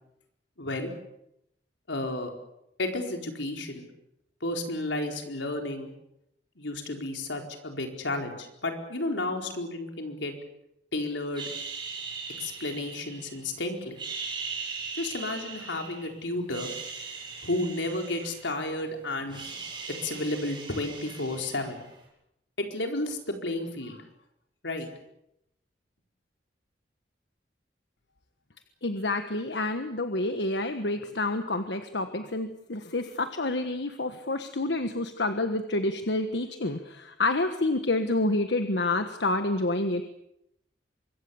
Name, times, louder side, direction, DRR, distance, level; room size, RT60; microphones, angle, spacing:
voice 1, 0.6-0.9 1.9-2.3 2.8-3.8 4.4-5.9 6.6-10.3 10.9-11.5 12.4-14.0 14.9-16.7 17.4-19.6 20.0-21.8 22.6-24.0 24.6-24.9, left 2 dB, 90° left, 3 dB, 4.4 m, -32 dB
sound 1, 11.3-13.5 13.9-16.1 16.4-18.8 19.1-22.0, right 5 dB, 25° right, 7.9 m, -39 dB
voice 2, 28.8-40.0, left 2 dB, 75° left, 8 dB, 1.4 m, -28 dB
25.0 x 23.0 x 7.1 m, 0.81 s
head